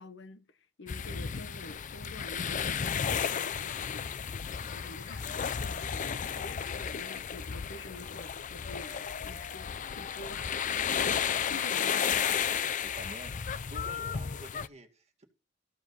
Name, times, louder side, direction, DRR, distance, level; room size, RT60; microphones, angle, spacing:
voice 1, 0.0-11.9, left 1 dB, 70° left, 1.2 m, -48 dB
sound 1, 0.9-14.7, left 7 dB, 40° left, 0.5 m, -33 dB
voice 2, 11.8-15.2, right 1 dB, 35° right, 2.2 m, -49 dB
14.5 x 5.1 x 5.6 m
head